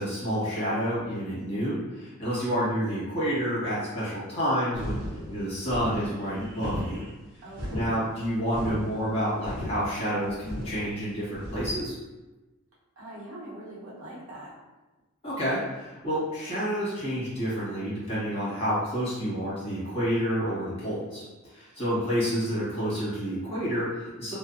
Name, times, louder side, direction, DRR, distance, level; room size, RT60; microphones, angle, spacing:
voice 1, 0.0-5.0 5.3-7.0 7.7-12.0 15.2-21.2 21.5-24.3, equal, 25° left, -10 dB, 1.3 m, -29 dB
sound 1, 4.7-11.8, equal, 45° right, 1.0 m, -36 dB
voice 2, 7.4-8.0 13.0-14.6, right 1 dB, 85° right, -7 dB, 0.9 m, -44 dB
2.6 x 2.1 x 2.5 m, 1.1 s
head